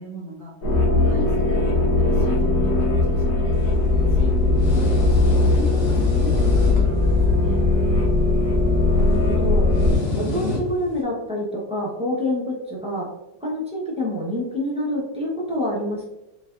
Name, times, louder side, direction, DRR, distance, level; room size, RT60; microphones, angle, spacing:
voice 1, 0.0-3.8 4.1-7.7, equal, 55° right, -3 dB, 1.0 m, -36 dB
sound 1, 0.6-10.0, left 2 dB, 90° left, 1.8 m, -19 dB
sound 2, 3.5-11.0, left 2 dB, 55° left, 1.0 m, -31 dB
sound 3, 5.9-8.7, right 1 dB, 80° right, 1.8 m, -35 dB
voice 2, 8.9-13.1 13.4-16.1, left 1 dB, 10° right, -4 dB, 0.3 m, -27 dB
5.5 x 2.3 x 2.4 m, 0.96 s
omnidirectional pair, 1.8 m